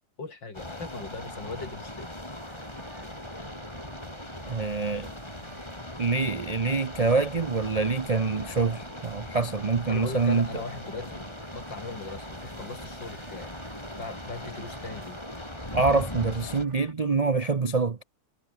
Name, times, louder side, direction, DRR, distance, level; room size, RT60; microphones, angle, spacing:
voice 1, 0.2-2.1 9.9-11.3 11.5-13.5 14.0-15.2, left 3 dB, 75° left, 5.0 m, -39 dB
sound 1, 0.5-16.7, left 1 dB, 15° left, 4.0 m, -40 dB
sound 2, 2.4-16.9, right 4 dB, 40° right, 2.7 m, -51 dB
voice 2, 4.5-5.1 6.0-10.5 15.7-18.0, right 4 dB, 75° right, 0.3 m, -25 dB
omnidirectional pair, 2.0 m